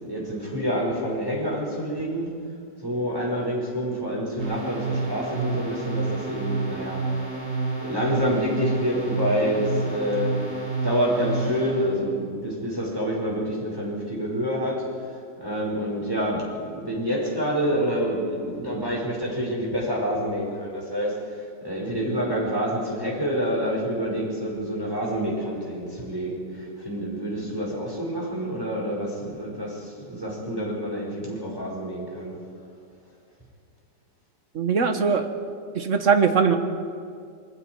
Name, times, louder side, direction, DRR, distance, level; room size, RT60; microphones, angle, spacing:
voice 1, 0.0-2.4 2.8-7.0 7.8-10.4 10.8-14.9 15.4-32.4, equal, 10° right, -4 dB, 5.9 m, -27 dB
sound 1, 4.4-11.9, right 3 dB, 90° right, 6.6 m, -29 dB
voice 2, 34.5-35.3 35.7-36.6, right 6 dB, 45° right, 7 dB, 1.6 m, -20 dB
27.5 x 21.5 x 4.8 m, 2.3 s
omnidirectional pair, 1.9 m